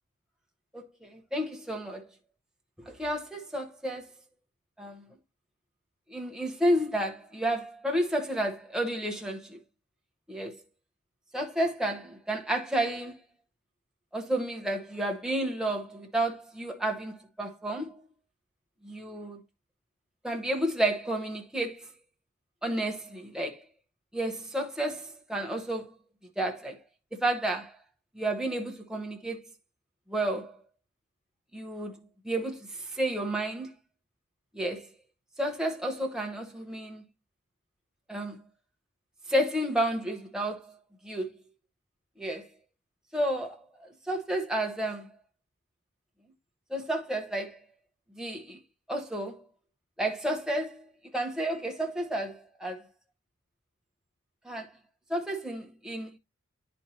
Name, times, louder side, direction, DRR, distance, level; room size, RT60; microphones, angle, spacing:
voice 1, 0.7-2.1 2.8-4.1 4.8-5.1 6.1-9.6 10.3-10.6 11.3-13.2 14.1-18.0 18.8-19.4 20.2-21.9 22.6-23.6 24.1-25.9 26.4-26.8 27.1-27.8 28.1-29.4 30.1-30.6 31.5-32.0 32.2-33.7 34.5-34.9 35.4-37.0 38.1-38.4 39.3-40.8 41.0-41.3 42.2-42.5 43.1-45.1 46.7-47.6 48.2-48.6 48.9-49.4 50.0-50.9 51.1-52.9 54.4-54.7 55.1-56.1, right 1 dB, 5° right, 1.0 m, -31 dB
9.9 x 4.3 x 2.8 m
head